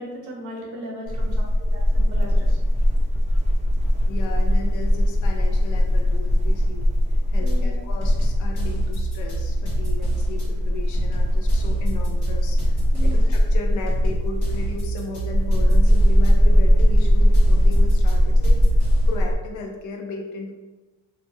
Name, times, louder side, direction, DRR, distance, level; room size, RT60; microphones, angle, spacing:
voice 1, 0.0-1.5 1.7-2.6 7.4-7.7 12.9-13.2, equal, 75° right, -2 dB, 0.9 m, -36 dB
sound 1, 1.1-19.3, equal, 20° right, 0.5 m, -19 dB
voice 2, 4.1-6.8 7.3-18.6 19.1-20.5, left 3 dB, 80° left, 2 dB, 0.6 m, -35 dB
sound 2, 7.5-7.6 8.0-10.5 10.9-13.4 13.9-16.3 16.8-19.2, right 6 dB, 55° left, 1.2 m, -31 dB
2.9 x 2.2 x 2.7 m, 1.2 s
cardioid pair, 90°, 30 cm